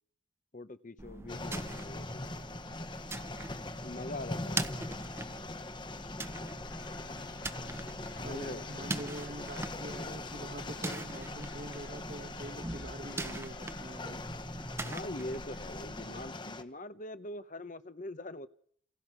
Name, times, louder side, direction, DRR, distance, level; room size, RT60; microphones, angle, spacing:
voice 1, 0.5-2.3 3.8-5.0 8.2-8.7 14.8-18.5, left 1 dB, 40° left, 1.0 m, -43 dB
sound 1, 1.0-16.3, right 2 dB, 15° right, 1.1 m, -42 dB
Soft Rain Interior Perspective, 1.3-16.6, left 2 dB, 25° left, 1.4 m, -42 dB
sound 2, 6.7-14.1, left 4 dB, 70° left, 5.3 m, -56 dB
voice 2, 8.2-14.2, right 1 dB, 45° right, 1.7 m, -45 dB
29.0 x 28.5 x 6.3 m
head